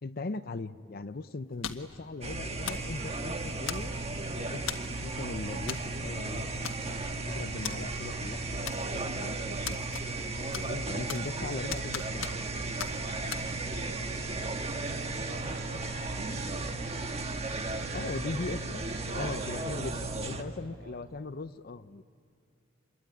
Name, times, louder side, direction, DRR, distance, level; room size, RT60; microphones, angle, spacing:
voice 1, 0.0-4.0 4.4-6.7 7.1-9.9 10.5-12.4 17.9-22.0, left 3 dB, 50° left, 10 dB, 0.6 m, -39 dB
sound 1, 1.6-2.0 2.7-2.9 3.7-4.1 4.7-5.0 5.7-5.9 6.1-6.2 6.6-7.1 7.6-7.8 8.7-9.1 9.7-10.3 10.5-11.4 11.7-12.5 12.8-12.9 13.3-13.4, left 8 dB, 80° left, 1.5 m, -38 dB
sound 2, 2.0-19.6, equal, 70° right, 5.8 m, -58 dB
sound 3, 2.2-20.4, right 3 dB, 30° right, 1.4 m, -35 dB
voice 2, 10.8-11.4 13.7-16.5 17.6-19.3 19.8-20.9, right 1 dB, 50° right, 3 dB, 5.9 m, -49 dB
26.0 x 22.0 x 9.6 m, 2.4 s
head